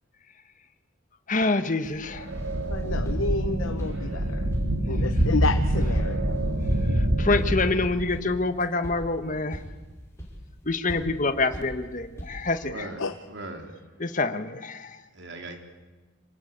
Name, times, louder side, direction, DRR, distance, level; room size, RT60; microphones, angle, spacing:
voice 1, 1.3-2.2 7.2-9.6 10.7-12.7 14.0-14.9, left 3 dB, 40° left, 1.4 m, -26 dB
sound 1, 1.8-12.6, equal, 15° left, 6.2 m, -42 dB
sound 2, 2.1-8.2, right 1 dB, 90° right, 3.0 m, -26 dB
voice 2, 2.7-4.4 4.9-6.3 13.0-13.1, left 4 dB, 90° left, 0.9 m, -30 dB
voice 3, 12.6-13.8 15.1-15.6, right 2 dB, 60° right, 3.6 m, -39 dB
27.0 x 20.0 x 8.8 m
head